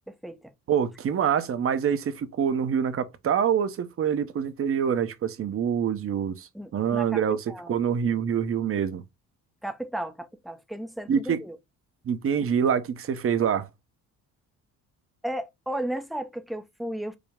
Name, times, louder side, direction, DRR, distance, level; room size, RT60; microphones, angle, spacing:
voice 1, 0.1-0.5 6.5-7.2 7.5-7.7 9.6-11.6 15.2-17.2, right 1 dB, ahead, 0.5 m, -34 dB
voice 2, 0.7-9.0 11.1-11.4 12.0-13.7, right 8 dB, 40° right, 0.7 m, -26 dB
5.0 x 2.0 x 3.4 m
cardioid pair, 100°, 34 cm